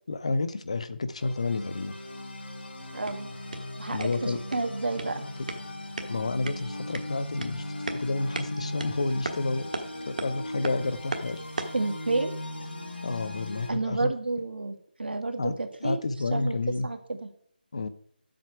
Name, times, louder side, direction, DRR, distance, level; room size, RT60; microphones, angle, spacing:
voice 1, 0.1-2.0 3.9-4.4 6.0-7.7 7.9-9.7 10.0-11.4 13.0-14.1 15.4-15.5 15.8-16.9 17.7-17.9, left 3 dB, 40° left, 13 dB, 0.7 m, -30 dB
sound 1, 1.2-13.7, left 1 dB, 80° left, 3.6 m, -38 dB
sound 2, 2.8-11.9, right 3 dB, 50° right, 1.3 m, -39 dB
voice 2, 2.9-3.3 3.8-5.2 11.7-12.3 13.7-16.0 16.3-16.6 16.8-17.3, right 3 dB, 80° right, 6 dB, 1.8 m, -30 dB
10.5 x 7.8 x 4.7 m, 0.62 s
figure-of-eight pair, 175°, 5 cm